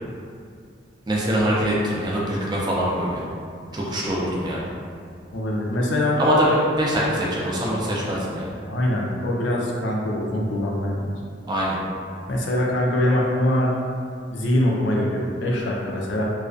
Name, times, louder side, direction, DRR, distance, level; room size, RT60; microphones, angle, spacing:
voice 1, 1.1-3.2 3.7-4.6 6.2-8.5 11.5-11.8, equal, 25° right, -5 dB, 0.4 m, -23 dB
voice 2, 5.3-6.2 8.7-11.1 12.3-13.7 14.3-16.3, left 1 dB, 80° left, -2 dB, 0.4 m, -23 dB
2.3 x 2.3 x 2.4 m, 2.3 s
head